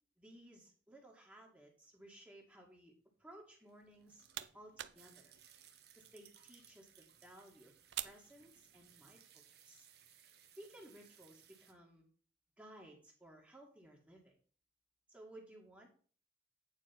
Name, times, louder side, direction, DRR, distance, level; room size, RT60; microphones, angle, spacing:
voice 1, 0.2-2.9 3.2-4.2 4.5-5.4 6.0-7.7 8.0-9.9 10.6-12.0 12.6-14.4 15.1-15.9, right 1 dB, 10° right, 0 dB, 1.8 m, -58 dB
sound 1, 3.6-11.7, right 9 dB, 60° right, 1.3 m, -64 dB
sound 2, 3.8-9.1, right 13 dB, 85° right, 0.6 m, -51 dB
9.3 x 4.5 x 5.8 m, 0.42 s
head